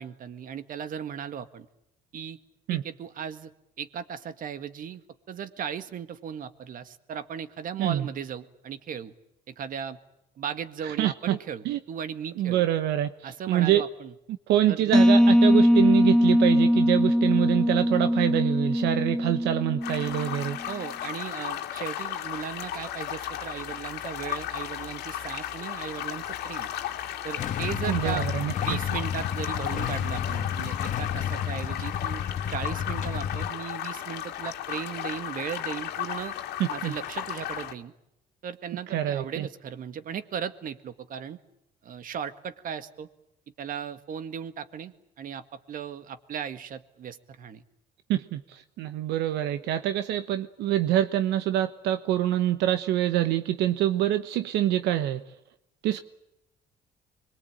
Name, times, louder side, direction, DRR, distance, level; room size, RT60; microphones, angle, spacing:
voice 1, 0.0-1.7 2.1-2.4 2.7-3.5 3.8-5.0 5.3-9.1 9.5-10.0 10.4-12.6 13.2-14.1 14.7-14.9 20.7-26.7 27.2-28.3 28.6-32.2 32.5-36.3 36.7-37.9 38.4-41.4 41.8-43.1 43.6-47.6, right 8 dB, 55° right, 11 dB, 1.9 m, -36 dB
voice 2, 10.8-11.4 11.6-11.8 12.4-13.8 14.5-20.6 27.8-28.5 36.6-36.9 38.9-39.5 48.1-55.2 55.8-56.0, right 12 dB, 85° right, 10 dB, 1.1 m, -25 dB
sound 1, 14.9-20.5, equal, 5° left, 1.3 m, -21 dB
sound 2, 19.8-37.7, left 11 dB, 75° left, 2.1 m, -35 dB
Motorcycle / Engine starting / Idling, 27.4-33.5, left 8 dB, 50° left, 1.3 m, -31 dB
25.5 x 22.5 x 8.9 m, 0.84 s
cardioid pair, 110°, 17 cm